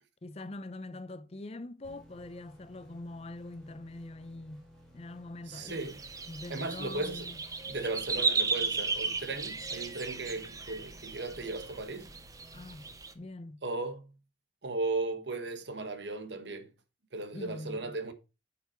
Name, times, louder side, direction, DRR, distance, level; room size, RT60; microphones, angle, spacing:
voice 1, 0.2-4.6 4.9-5.9 6.3-7.4 12.5-13.6 17.3-18.0, left 2 dB, 35° left, 0.6 m, -43 dB
sound 1, 1.8-13.5, equal, ahead, 3.7 m, -57 dB
voice 2, 5.5-6.0 6.5-7.3 7.7-12.1 13.6-14.1 14.6-16.7 17.1-18.1, right 3 dB, 70° right, 1.3 m, -36 dB
sound 2, 5.7-13.1, right 4 dB, 20° right, 0.8 m, -35 dB
8.6 x 5.8 x 4.3 m
head